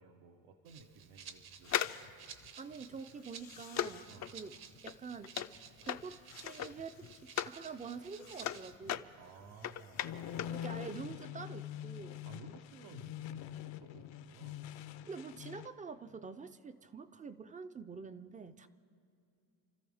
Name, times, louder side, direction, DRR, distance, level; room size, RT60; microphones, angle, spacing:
voice 1, 0.0-2.1 4.1-4.3 9.2-10.5 12.2-14.6, right 5 dB, 85° right, 3 dB, 1.2 m, -56 dB
Rattle (instrument), 0.6-8.8, right 7 dB, 55° right, 0.9 m, -54 dB
sound 1, 1.6-7.6 8.0-10.6 10.9-11.0, left 10 dB, 40° left, 0.4 m, -39 dB
voice 2, 2.6-4.6 4.8-5.3 5.8-9.1 10.5-12.3 15.1-18.7, right 5 dB, 20° right, 11 dB, 0.4 m, -46 dB
sound 2, 10.0-15.7, left 11 dB, 70° left, 0.8 m, -44 dB
28.5 x 13.5 x 3.5 m, 2.6 s
cardioid pair, 125°, 46 cm